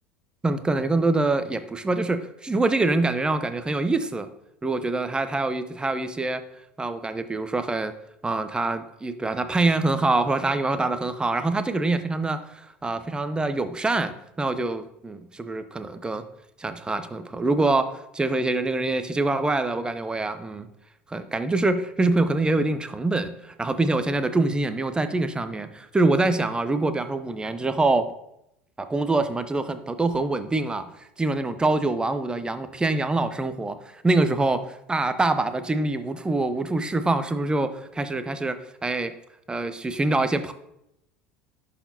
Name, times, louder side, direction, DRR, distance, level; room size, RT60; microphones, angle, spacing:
voice 1, 0.4-4.3 4.6-6.4 6.8-7.9 8.2-16.2 16.6-17.8 18.1-20.7 21.1-28.1 28.8-30.9 31.2-34.6 34.9-38.6 38.8-39.1 39.5-40.5, right 2 dB, 15° right, 10 dB, 0.6 m, -25 dB
11.0 x 4.2 x 2.7 m, 0.79 s
figure-of-eight pair, 70°, 7 cm